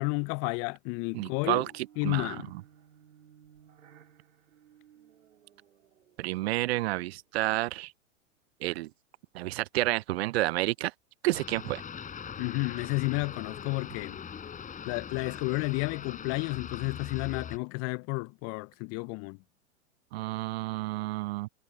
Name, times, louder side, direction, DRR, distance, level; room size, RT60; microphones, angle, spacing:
voice 1, 0.0-1.6 2.0-2.5 12.4-14.2 14.9-19.4, left 30 dB, 35° left, 0.7 m, -31 dB
sound 1, 0.9-7.3, right 9 dB, 75° right, 3.3 m, -59 dB
voice 2, 1.1-2.6 6.2-7.9 8.6-8.9 9.3-10.9 11.2-11.8 20.1-21.5, right 18 dB, 55° right, 0.6 m, -30 dB
sound 2, 11.3-17.6, left 7 dB, 20° left, 4.6 m, -41 dB
hypercardioid pair, 105°, 39 cm